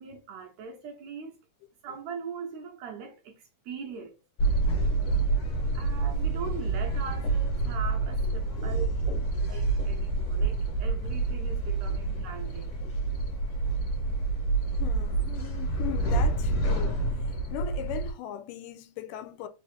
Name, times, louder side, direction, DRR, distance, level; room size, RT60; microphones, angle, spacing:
voice 1, 0.0-1.4 1.8-4.1 4.6-4.7 5.7-12.8, right 5 dB, 75° right, 1.7 m, -41 dB
sound 1, 4.4-18.1, right 3 dB, 55° left, 1.8 m, -28 dB
voice 2, 8.5-9.3 11.9-12.0 12.8-12.9 14.8-17.0 17.5-19.5, left 11 dB, 90° left, 2.2 m, -39 dB
4.9 x 2.8 x 3.1 m
omnidirectional pair, 3.7 m